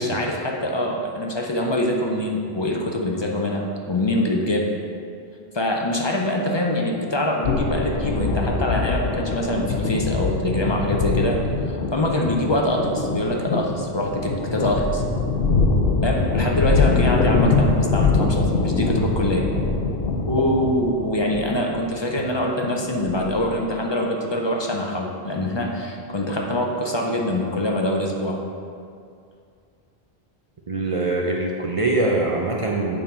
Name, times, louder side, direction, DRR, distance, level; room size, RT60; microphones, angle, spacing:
voice 1, 0.0-4.7 5.5-15.0 16.0-19.5 20.3-28.4, left 1 dB, 35° left, 0 dB, 0.4 m, -24 dB
sound 1, 7.4-23.6, left 3 dB, 70° left, 0.8 m, -23 dB
voice 2, 30.7-33.0, right 2 dB, 40° right, -2 dB, 0.5 m, -23 dB
6.9 x 3.8 x 5.3 m, 2.4 s
omnidirectional pair, 1.0 m